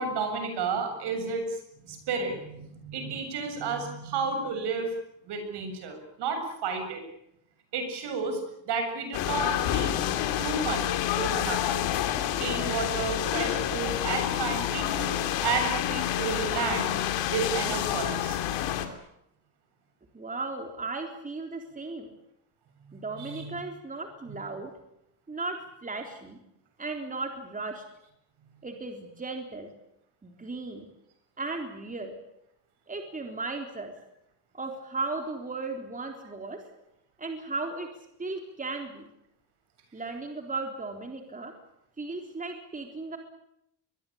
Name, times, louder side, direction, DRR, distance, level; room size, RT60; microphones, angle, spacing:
voice 1, 0.0-1.6 1.8-4.9 5.2-7.0 7.7-8.4 8.7-10.0 10.4-11.8 12.4-16.9 17.3-18.4 23.2-23.6, right 4 dB, 70° right, 6 dB, 7.6 m, -32 dB
sound 1, 9.1-18.9, left 11 dB, 90° left, 3.0 m, -28 dB
voice 2, 20.1-22.1 22.9-24.7 25.3-26.4 26.8-27.8 28.6-29.7 30.2-30.9 31.4-32.1 32.9-33.9 34.5-36.6 37.2-37.9 38.2-39.1 39.9-41.5 42.0-43.2, right 3 dB, 20° right, 4 dB, 3.9 m, -36 dB
23.0 x 22.0 x 8.8 m, 0.79 s
cardioid pair, 105°, 43 cm